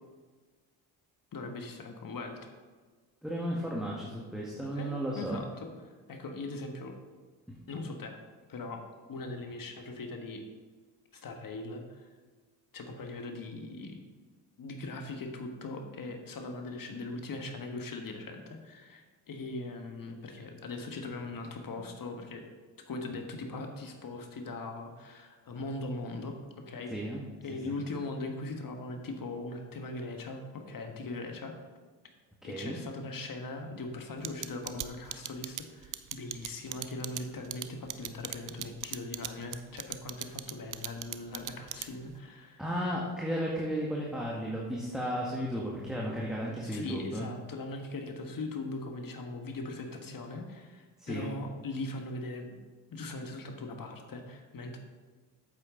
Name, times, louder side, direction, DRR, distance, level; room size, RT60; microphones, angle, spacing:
voice 1, 1.3-2.5 4.7-7.0 7.7-8.2 8.5-8.8 9.1-10.5 11.1-12.1 12.7-14.1 14.6-22.5 22.9-26.9 27.4-31.6 32.4-42.6 46.6-52.6 52.9-54.8, left 2 dB, 45° left, 4 dB, 1.6 m, -40 dB
voice 2, 3.2-5.4 7.5-7.6 21.8-21.9 26.9-27.2 27.6-27.7 32.4-32.8 42.6-47.3 51.0-51.3, equal, ahead, -4 dB, 1.7 m, -34 dB
sound 1, 34.2-42.1, right 13 dB, 40° right, 0.6 m, -38 dB
8.4 x 8.1 x 3.8 m, 1.4 s
hypercardioid pair, 55°, 49 cm